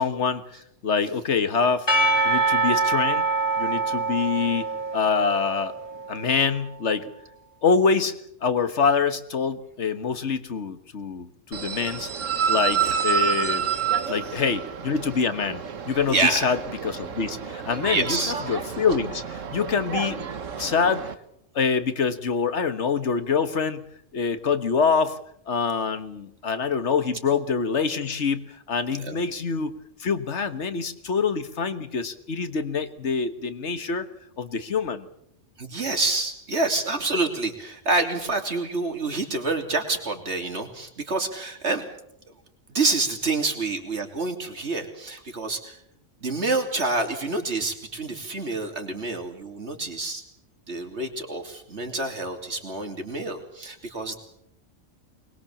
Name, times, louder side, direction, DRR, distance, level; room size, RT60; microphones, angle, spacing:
voice 1, 0.0-1.9 2.2-3.3 3.6-4.7 4.9-5.7 6.1-7.1 7.6-8.2 8.4-12.1 12.5-13.7 14.1-16.6 16.8-20.2 20.6-21.1 21.6-23.9 24.1-25.2 25.5-34.1 34.4-35.1, left 5 dB, 65° left, 11 dB, 1.7 m, -25 dB
Percussion / Church bell, 1.9-6.2, right 3 dB, 20° left, 2.4 m, -24 dB
sound 1, 11.5-21.1, right 7 dB, 90° right, 1.6 m, -29 dB
voice 2, 16.1-16.6 17.9-18.3 28.9-29.2 35.6-41.9 42.7-45.8 46.2-50.2 50.7-54.2, right 3 dB, 60° right, 4 dB, 3.3 m, -27 dB
23.5 x 21.0 x 7.3 m, 0.73 s
omnidirectional pair, 1.3 m